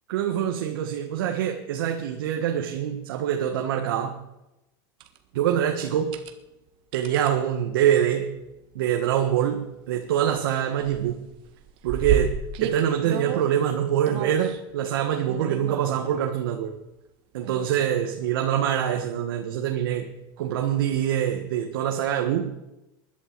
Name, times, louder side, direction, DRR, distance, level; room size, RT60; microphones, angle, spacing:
voice 1, 0.1-4.2 5.3-6.2 6.9-8.3 8.7-11.2 11.8-16.7 17.3-20.1 20.4-22.5, right 10 dB, 80° right, 4 dB, 1.5 m, -25 dB
sound 1, 5.0-5.2 5.9-6.3 6.9-7.3 8.5-8.7 9.2-9.3 9.6-10.5 10.8-13.5 14.1-14.6 15.3-16.2 17.4-18.0 18.5-18.6 20.9-21.0, right 8 dB, 45° right, 1.5 m, -32 dB
20.5 x 11.5 x 4.7 m, 0.93 s
supercardioid pair, 140°, 12 cm